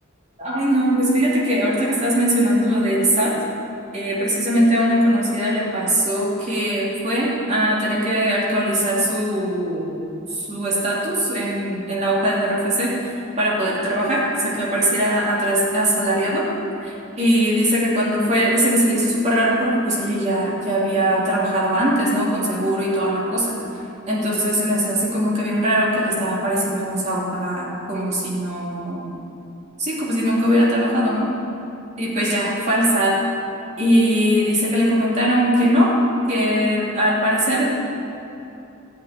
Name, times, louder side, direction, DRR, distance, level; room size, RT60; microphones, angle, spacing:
voice 1, 0.4-3.3 3.9-9.9 10.3-12.9 13.4-16.4 16.8-23.6 24.1-29.2 29.8-31.3 32.0-33.2 33.8-35.9 36.3-37.7, equal, 35° right, -6 dB, 3.0 m, -20 dB
12.5 x 6.2 x 9.7 m, 2.8 s
head